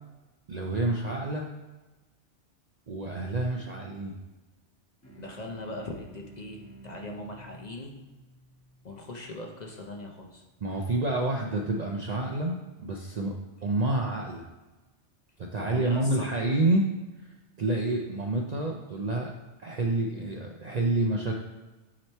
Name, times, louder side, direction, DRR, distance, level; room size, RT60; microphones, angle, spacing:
voice 1, 0.5-1.5 2.9-4.2 10.6-13.3 13.6-14.4 15.4-16.9 17.2-19.3 19.6-21.4, right 2 dB, 50° right, 0 dB, 0.5 m, -28 dB
sound 1, 5.0-9.9, right 3 dB, 15° left, 1.0 m, -52 dB
voice 2, 5.2-7.9 8.8-10.4 15.6-16.5, left 2 dB, 45° left, 1 dB, 0.7 m, -40 dB
8.6 x 3.0 x 4.4 m, 1.2 s
omnidirectional pair, 1.2 m